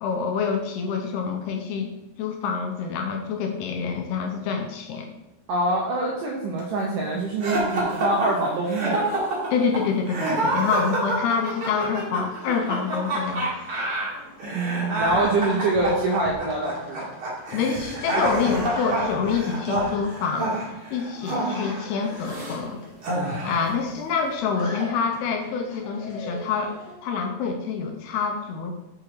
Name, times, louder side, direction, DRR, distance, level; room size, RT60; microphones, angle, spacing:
voice 1, 0.0-1.9 2.2-5.1 9.5-13.5 17.5-20.6 20.9-22.8 23.4-26.7 27.0-28.7, left 5 dB, 80° left, 4 dB, 2.5 m, -26 dB
voice 2, 5.5-9.1 14.5-17.1, right 2 dB, 75° right, -2 dB, 2.0 m, -25 dB
sound 1, 7.4-27.0, left 1 dB, 50° left, 2.4 m, -45 dB
sound 2, 7.4-22.6 23.0-23.7, right 1 dB, 40° right, 2.2 m, -28 dB
sound 3, 15.0-20.2, right 3 dB, 90° right, 1.5 m, -43 dB
6.9 x 6.0 x 4.7 m, 0.90 s
omnidirectional pair, 5.0 m